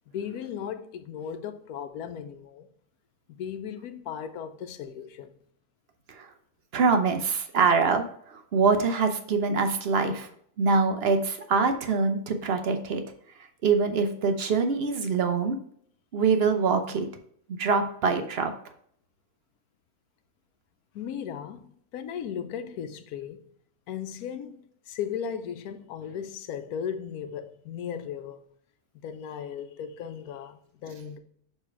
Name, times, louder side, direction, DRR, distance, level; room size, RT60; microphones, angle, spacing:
voice 1, 0.1-2.7 3.3-5.3 20.9-23.5 23.9-28.4 29.0-31.2, left 8 dB, 80° left, 1.1 m, -36 dB
voice 2, 6.7-10.3 10.6-13.0 13.6-15.6 16.1-17.1 17.5-18.5, right 4 dB, 55° right, 0.8 m, -24 dB
6.7 x 3.4 x 4.5 m
omnidirectional pair, 1.5 m